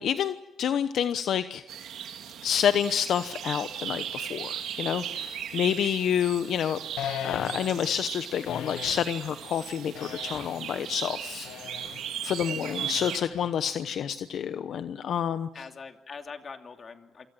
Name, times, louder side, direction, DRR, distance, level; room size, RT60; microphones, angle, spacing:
voice 1, 0.0-1.6 2.4-6.8 7.2-11.5 12.2-15.5, left 9 dB, 70° left, 10 dB, 1.0 m, -28 dB
sound 1, 1.7-13.2, right 9 dB, 80° right, 3.1 m, -37 dB
sound 2, 7.0-7.9 8.5-9.1 9.9-10.7 11.4-12.1 13.0-13.7, left 9 dB, 85° left, 2.0 m, -38 dB
voice 2, 12.3-12.8 15.5-17.3, left 5 dB, 40° left, 5 dB, 2.8 m, -44 dB
28.0 x 24.0 x 7.7 m, 0.96 s
cardioid pair, 90°, 0 cm